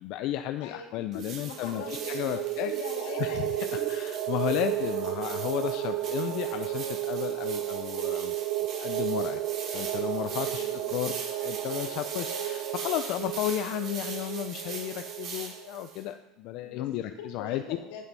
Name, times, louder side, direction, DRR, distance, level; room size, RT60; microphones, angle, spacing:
voice 1, 0.0-2.7 3.2-8.3 8.8-9.4 9.7-17.6, left 13 dB, 55° left, 8 dB, 0.5 m, -33 dB
voice 2, 1.1-3.9 10.4-10.9 16.6-16.9 17.2-18.1, left 6 dB, 85° left, 2 dB, 2.2 m, -41 dB
sound 1, 1.1-16.0, right 5 dB, 45° right, 2.8 m, -42 dB
sound 2, 1.5-15.9, right 12 dB, 80° right, 1.5 m, -33 dB
8.4 x 7.7 x 5.4 m, 0.87 s
cardioid pair, 145°, 0 cm